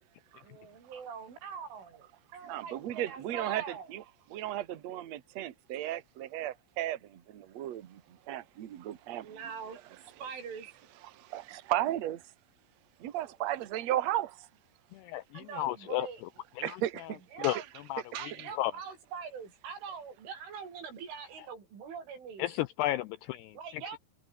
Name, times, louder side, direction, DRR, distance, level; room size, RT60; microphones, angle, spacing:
voice 1, 0.4-3.9 9.1-9.8 10.2-10.7 15.4-16.2 17.3-17.6 18.1-22.5 23.5-24.0, right 6 dB, 80° right, 8.1 m, -43 dB
voice 2, 2.4-4.0 4.3-8.0 8.3-9.4 9.7-9.8 11.0-12.2 13.0-14.3 16.6-17.6 18.1-18.5, right 13 dB, 60° right, 1.8 m, -35 dB
voice 3, 15.5-16.1 16.6-17.1 17.4-17.6 17.9-18.7 22.4-23.6, left 15 dB, 90° left, 2.4 m, -33 dB
omnidirectional pair, 5.5 m